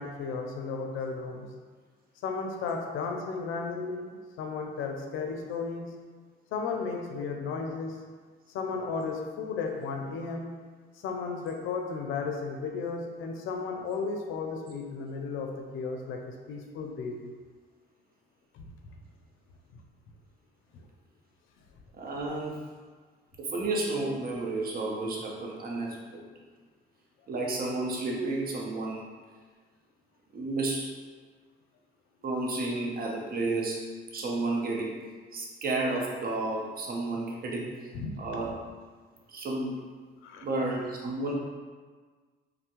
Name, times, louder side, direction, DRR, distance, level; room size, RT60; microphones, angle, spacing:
voice 1, 0.0-1.5 2.2-5.9 6.5-8.0 8.5-10.5 11.0-17.3 18.5-18.7 20.7-20.8 37.9-38.5 40.2-40.5, left 4 dB, 85° left, 3 dB, 0.4 m, -34 dB
voice 2, 22.0-22.6 23.5-26.2 27.3-29.1 30.3-30.9 32.2-33.9 34.1-34.9 35.3-37.7 38.2-38.6 39.3-39.7 40.4-41.3, right 2 dB, 50° right, -1 dB, 0.6 m, -31 dB
3.2 x 2.0 x 2.9 m, 1.5 s
cardioid pair, 90°, 20 cm